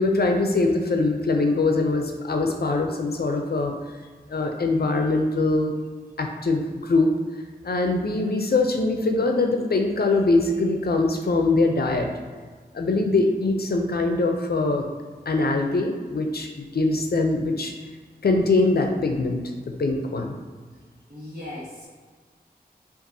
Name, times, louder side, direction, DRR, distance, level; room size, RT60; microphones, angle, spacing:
voice 1, 0.0-3.7 4.3-5.8 6.2-7.1 7.6-12.1 12.7-14.9 15.3-17.7 18.2-20.4, left 3 dB, 70° left, 3 dB, 0.5 m, -22 dB
voice 2, 21.1-21.9, left 1 dB, 60° right, -8 dB, 1.2 m, -37 dB
5.3 x 2.5 x 2.6 m, 1.5 s
wide cardioid pair, 60°, 17 cm